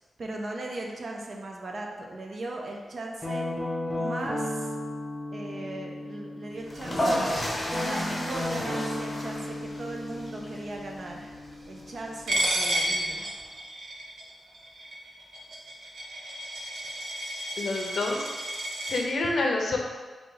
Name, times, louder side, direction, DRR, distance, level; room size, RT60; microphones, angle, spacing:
voice 1, 0.2-3.5 4.0-4.7 5.3-7.2 7.7-11.3 11.7-13.3, right 2 dB, 45° right, 1 dB, 0.5 m, -38 dB
Guitar, 3.2-7.0 7.6-12.4, left 1 dB, ahead, 1.3 m, -35 dB
sound 1, 6.6-13.4, equal, 20° left, 0.8 m, -33 dB
Coin (dropping), 12.3-19.0, right 1 dB, 85° right, 0.6 m, -31 dB
voice 2, 17.6-18.3 18.8-19.8, left 2 dB, 60° left, 1 dB, 0.6 m, -27 dB
3.9 x 2.8 x 3.9 m, 1.4 s
wide cardioid pair, 160°, 0 cm